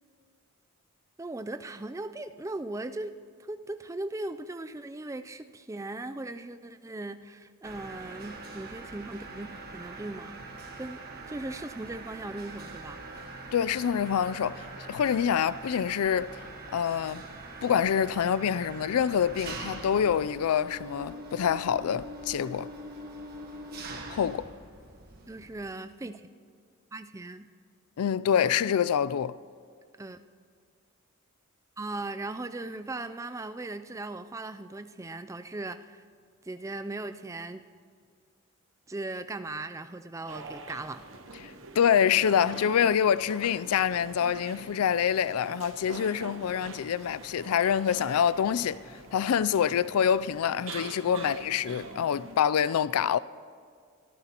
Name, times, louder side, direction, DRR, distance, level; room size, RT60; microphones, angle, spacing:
voice 1, 1.2-3.1 3.4-10.5 10.8-11.0 11.3-13.0 25.3-26.3 26.9-27.5 30.0-30.2 31.8-36.0 36.4-37.6 38.9-41.0 51.1-51.3, right 2 dB, 15° right, 0.3 m, -38 dB
Mechanisms, 7.6-25.7, right 2 dB, 45° right, 1.4 m, -43 dB
voice 2, 13.5-16.4 16.7-17.2 17.6-22.7 24.1-24.5 28.0-29.4 41.8-48.8 49.1-53.2, left 8 dB, 90° left, 0.4 m, -26 dB
sound 1, 40.3-52.4, right 3 dB, 65° right, 1.0 m, -45 dB
23.0 x 13.0 x 2.9 m
head